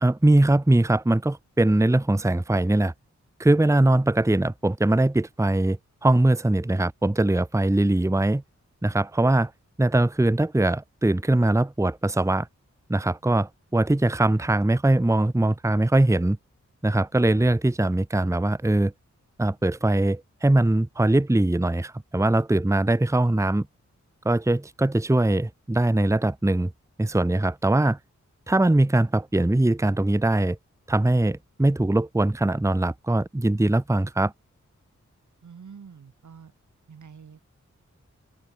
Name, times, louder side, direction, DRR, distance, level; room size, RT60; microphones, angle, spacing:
voice 1, 0.0-2.9 3.4-8.4 8.8-9.5 9.8-12.5 12.9-16.4 16.8-18.9 19.4-23.7 24.2-26.7 27.0-28.0 28.5-30.6 30.9-34.3, right 1 dB, 10° right, 0.9 m, -21 dB
voice 2, 35.4-36.5 36.9-37.4, right 6 dB, 75° right, 2.4 m, -46 dB
open air
cardioid pair, 40°, 30 cm